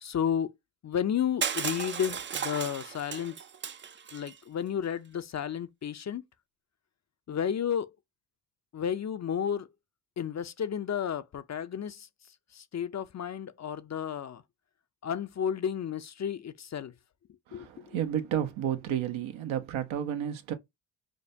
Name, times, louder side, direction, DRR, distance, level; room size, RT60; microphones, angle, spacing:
voice 1, 0.0-0.5 0.8-3.4 4.1-6.2 7.3-7.9 8.7-9.7 10.2-12.1 12.5-14.4 15.0-16.9 17.5-18.0, left 8 dB, 35° left, 0.5 m, -32 dB
Crushing, 1.4-4.3, right 7 dB, 25° right, 0.4 m, -35 dB
voice 2, 17.5-20.5, right 10 dB, 80° right, 0.9 m, -31 dB
5.1 x 2.1 x 2.6 m
cardioid pair, 75°, 47 cm